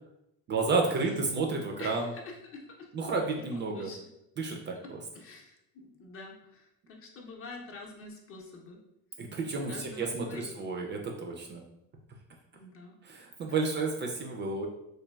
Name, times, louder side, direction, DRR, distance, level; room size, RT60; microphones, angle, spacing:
voice 1, 0.5-2.1 2.9-3.9 4.4-5.0 9.2-11.6 13.0-14.7, right 3 dB, 30° right, 2 dB, 0.4 m, -31 dB
voice 2, 1.8-2.9 3.5-4.1 4.8-4.9 5.1-8.8 9.7-10.6 12.5-13.0 13.5-13.6, left 3 dB, 40° left, 1 dB, 0.6 m, -47 dB
3.2 x 2.2 x 2.2 m, 0.83 s
supercardioid pair, 110°, 36 cm